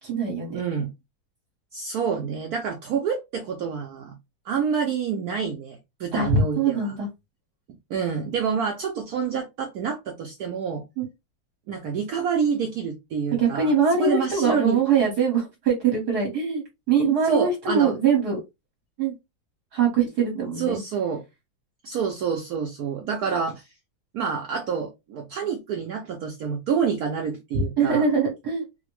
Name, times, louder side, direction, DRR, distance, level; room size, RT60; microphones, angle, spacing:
voice 1, 0.0-0.6 6.1-7.1 11.0-11.1 13.4-18.4 19.0-19.1 19.7-20.8 27.5-28.6, right 5 dB, 55° right, 1.5 m, -23 dB
voice 2, 0.5-0.9 1.7-4.1 4.5-6.9 7.9-10.8 11.7-14.8 17.2-17.9 20.6-21.2 21.8-23.7 24.1-28.1, right 6 dB, 80° right, 0.8 m, -27 dB
4.0 x 2.1 x 2.9 m
omnidirectional pair, 2.2 m